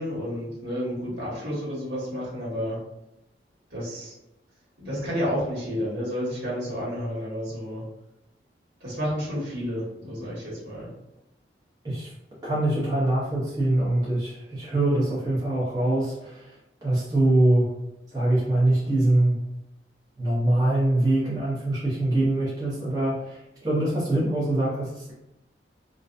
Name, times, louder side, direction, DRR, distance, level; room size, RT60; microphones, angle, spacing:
voice 1, 0.0-2.8 3.7-4.1 4.8-7.8 8.8-10.9, equal, 75° right, -7 dB, 1.3 m, -30 dB
voice 2, 12.4-17.7 18.1-19.4 20.2-25.1, right 1 dB, 20° right, -8 dB, 0.7 m, -24 dB
2.4 x 2.2 x 2.5 m, 0.89 s
head